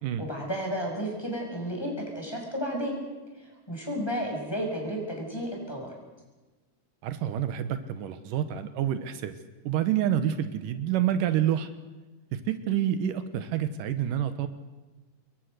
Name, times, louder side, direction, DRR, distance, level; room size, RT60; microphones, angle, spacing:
voice 1, 0.2-2.9 3.7-5.9, equal, 5° left, -1 dB, 6.5 m, -32 dB
voice 2, 7.0-9.3 9.6-11.7 12.3-14.5, right 10 dB, 80° right, 10 dB, 2.7 m, -28 dB
27.0 x 22.0 x 6.7 m, 1.2 s
omnidirectional pair, 3.7 m